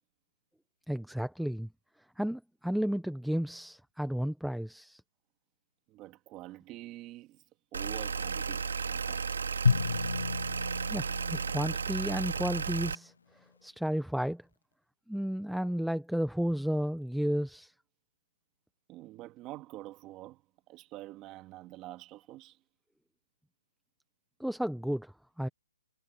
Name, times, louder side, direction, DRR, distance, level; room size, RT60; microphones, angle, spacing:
voice 1, 0.9-1.7 2.2-5.0 10.9-13.1 13.6-14.4 15.1-17.7 24.4-25.1 25.4-25.5, equal, ahead, 0.6 m, -32 dB
voice 2, 5.9-7.4 7.7-9.3 18.9-20.4 20.7-22.6, right 17 dB, 20° right, 2.1 m, -46 dB
sound 1, 7.7-12.9, right 5 dB, 85° right, 1.8 m, -34 dB
Drum, 9.7-12.6, left 5 dB, 85° left, 0.6 m, -32 dB
hypercardioid pair, 165°, 0 cm